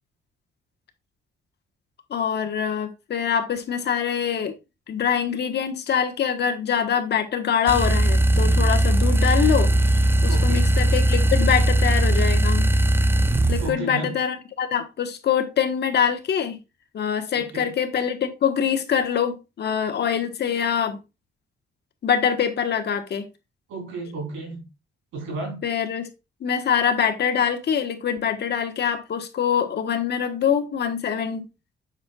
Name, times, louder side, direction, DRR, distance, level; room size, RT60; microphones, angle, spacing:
voice 1, 2.1-4.5 4.9-9.7 10.2-12.6 13.5-16.6 16.9-21.0 22.0-23.2 25.6-26.1 26.4-31.4, left 8 dB, 60° left, 1.3 m, -24 dB
sound 1, 7.7-13.7, right 1 dB, 10° right, 0.5 m, -19 dB
voice 2, 10.3-10.7 13.6-14.2 17.3-17.7 23.7-24.7 25.1-25.6, right 3 dB, 90° right, 3.6 m, -33 dB
7.3 x 6.2 x 2.4 m
cardioid pair, 90°, 20 cm